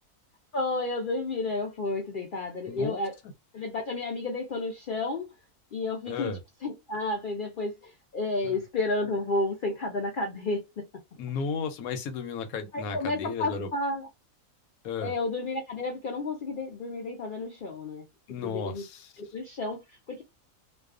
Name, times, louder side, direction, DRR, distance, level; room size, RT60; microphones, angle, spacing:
voice 1, 0.5-3.1 3.5-5.3 5.7-10.9 12.7-14.1 15.0-18.0 18.4-18.8 19.2-20.2, left 2 dB, 65° left, 0.5 m, -31 dB
voice 2, 2.7-3.0 6.1-6.4 8.4-8.5 11.1-13.7 14.8-15.1 18.3-19.1, left 5 dB, 80° left, 1.1 m, -34 dB
2.3 x 2.3 x 2.4 m
omnidirectional pair, 1.5 m